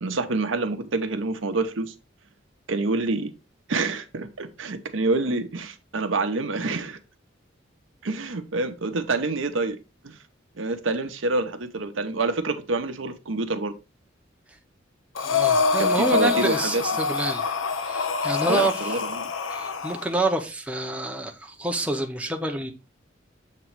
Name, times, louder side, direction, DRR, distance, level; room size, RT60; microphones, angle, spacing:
voice 1, 0.0-1.9 2.7-3.3 3.7-7.0 8.0-9.8 10.0-10.2 10.6-13.7 15.8-16.8 18.3-19.3, right 3 dB, 70° right, 0.7 m, -27 dB
Breathing, 15.2-20.1, left 5 dB, 75° left, 0.6 m, -25 dB
voice 2, 15.2-17.4 17.8-18.7 19.5-22.7, right 1 dB, 5° right, 0.7 m, -27 dB
7.4 x 3.0 x 4.5 m
head